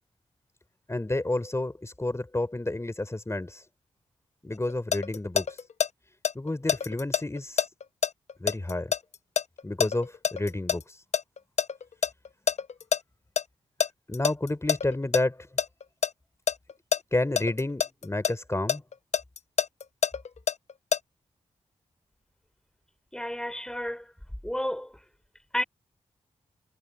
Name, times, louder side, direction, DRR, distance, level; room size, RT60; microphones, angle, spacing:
voice 1, 0.9-3.6 4.4-5.6 6.3-7.6 8.4-8.9 9.6-11.0 14.1-15.5 17.1-18.8, left 2 dB, 20° left, 4.6 m, -30 dB
sound 1, 4.5-5.9 6.2-10.8 11.1-13.0 13.4-13.5 13.8-15.2 15.6-16.1 16.5-18.3 18.7-21.0, left 8 dB, 65° left, 0.9 m, -26 dB
voice 2, 23.1-24.1 24.4-24.9 25.5-25.6, equal, 5° left, 4.8 m, -31 dB
supercardioid pair, 45°, 13 cm